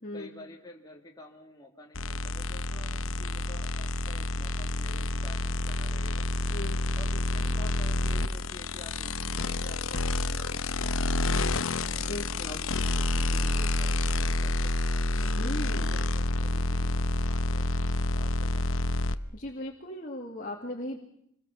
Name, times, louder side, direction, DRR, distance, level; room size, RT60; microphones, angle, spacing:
voice 1, 0.1-6.2 7.0-12.0 12.4-18.8, left 1 dB, 15° left, 0 dB, 2.4 m, -49 dB
sound 1, 1.9-19.1, left 2 dB, 65° left, 0.9 m, -28 dB
voice 2, 12.0-12.6 15.4-16.0 19.1-21.0, left 1 dB, 35° left, 0 dB, 2.3 m, -38 dB
27.0 x 22.0 x 7.1 m, 0.75 s
head